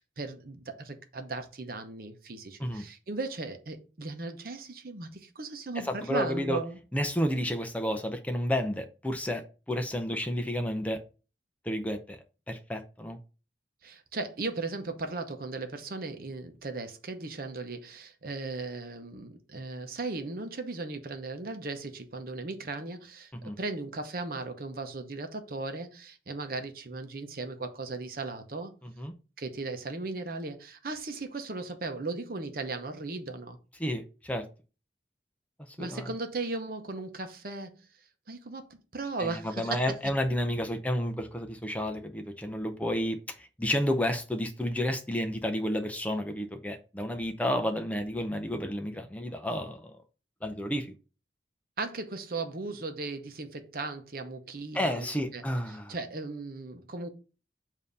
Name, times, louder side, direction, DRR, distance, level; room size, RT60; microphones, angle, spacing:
voice 1, 0.0-6.8 13.8-28.8 29.4-33.6 35.8-37.9 38.3-39.8 51.8-55.1 55.3-57.1, right 3 dB, 55° right, 0.8 m, -37 dB
voice 2, 5.9-6.6 6.9-9.4 9.7-11.0 11.6-12.2 12.5-13.2 23.4-23.6 28.8-29.1 33.8-34.4 35.7-36.1 39.2-50.0 50.4-50.9 54.7-55.9, equal, 10° left, 0.5 m, -31 dB
7.2 x 2.8 x 5.3 m
head